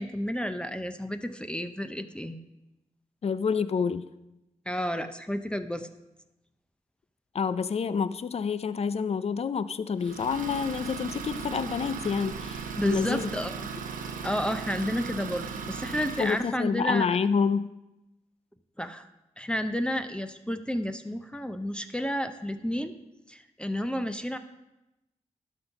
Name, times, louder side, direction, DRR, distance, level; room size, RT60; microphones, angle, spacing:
voice 1, 0.0-2.4 4.7-5.9 12.7-13.7 14.2-17.1 18.8-19.1 19.4-22.9 23.3-24.4, equal, 5° left, 8 dB, 0.7 m, -31 dB
voice 2, 3.2-4.0 7.3-13.3 16.2-17.7, left 6 dB, 50° left, 14 dB, 0.5 m, -28 dB
Idling, 10.0-16.5, right 5 dB, 80° right, 0.8 m, -37 dB
11.5 x 4.5 x 5.4 m, 0.94 s
cardioid pair, 45°, 14 cm